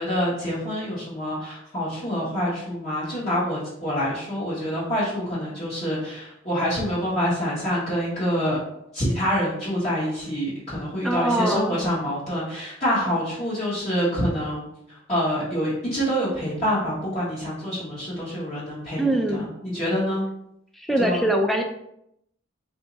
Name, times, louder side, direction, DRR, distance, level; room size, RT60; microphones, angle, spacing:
voice 1, 0.0-8.6 8.9-14.7 15.1-20.2 21.0-21.2, equal, 35° left, -10 dB, 1.2 m, -26 dB
voice 2, 11.0-11.8 19.0-19.4 20.8-21.6, right 1 dB, ahead, 3 dB, 0.3 m, -23 dB
3.4 x 2.7 x 4.0 m, 0.78 s
head